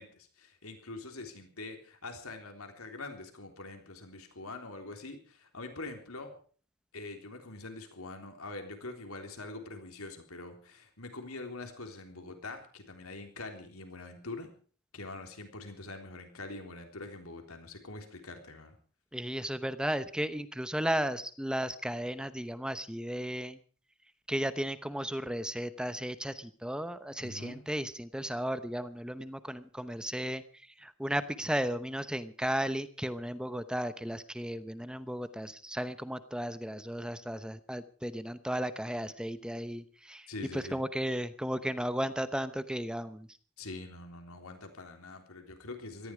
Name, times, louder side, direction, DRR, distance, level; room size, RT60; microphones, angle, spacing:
voice 1, 0.0-6.4 6.9-14.5 14.9-18.8 27.2-27.7 40.3-40.8 43.6-46.1, left 2 dB, 80° left, 5 dB, 3.6 m, -44 dB
voice 2, 19.1-23.6 24.3-30.4 30.8-40.3 40.5-43.3, equal, 5° right, 13 dB, 0.8 m, -34 dB
18.0 x 14.0 x 5.0 m, 0.42 s
head